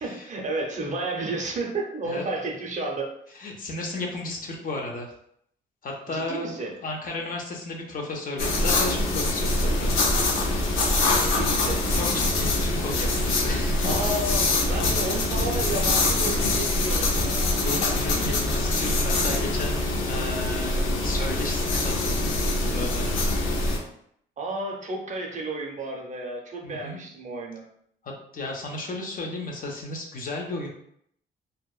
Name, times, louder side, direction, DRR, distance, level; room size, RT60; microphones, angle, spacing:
voice 1, 0.0-3.1 6.1-6.7 11.1-11.8 13.8-17.5 24.4-27.6, right 2 dB, 40° right, 0 dB, 0.6 m, -32 dB
voice 2, 3.3-5.1 5.8-6.5 6.8-9.9 11.9-14.1 17.4-22.3 22.6-23.1 26.6-27.0 28.0-30.7, left 2 dB, 45° left, 0 dB, 0.6 m, -34 dB
sound 1, 8.4-23.8, left 2 dB, 90° left, 0.6 m, -24 dB
2.7 x 2.1 x 2.3 m, 0.69 s
cardioid pair, 90°, 20 cm